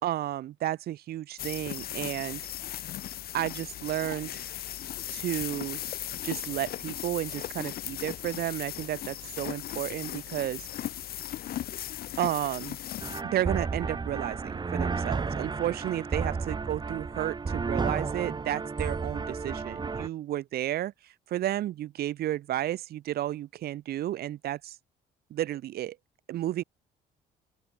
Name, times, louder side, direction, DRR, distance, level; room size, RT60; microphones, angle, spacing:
voice 1, 0.0-2.4 3.3-4.4 5.1-5.8 6.2-10.7 12.2-12.8 13.2-20.9 21.3-24.8 25.3-26.0 26.3-26.6, right 13 dB, 65° right, 2.9 m, -32 dB
sound 1, 1.4-13.2, left 12 dB, 65° left, 3.9 m, -37 dB
sound 2, 13.0-20.1, right 4 dB, 25° right, 6.4 m, -32 dB
open air
cardioid pair, 110°, 17 cm